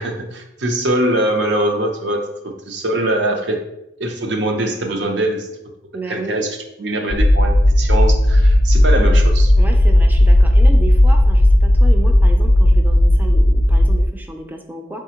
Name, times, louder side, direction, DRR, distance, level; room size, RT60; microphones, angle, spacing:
voice 1, 0.0-3.6 4.0-5.5 6.1-9.5, right 1 dB, 70° right, 3 dB, 0.7 m, -22 dB
voice 2, 5.9-6.4 9.6-15.0, right 2 dB, 10° right, 3 dB, 0.4 m, -32 dB
sound 1, 7.1-14.0, left 1 dB, 55° left, 0.5 m, -13 dB
4.1 x 3.5 x 2.9 m, 0.86 s
head